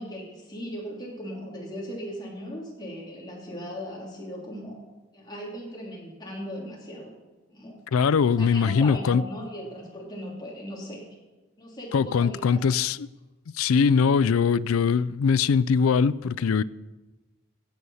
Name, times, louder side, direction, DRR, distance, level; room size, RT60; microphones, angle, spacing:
voice 1, 0.0-4.8 5.1-7.1 7.5-7.8 8.4-11.0 11.6-12.6, equal, 20° left, 3.3 m, -38 dB
voice 2, 7.9-9.2 11.9-13.1 13.5-16.6, left 6 dB, 85° left, 0.4 m, -22 dB
16.0 x 8.4 x 5.5 m
head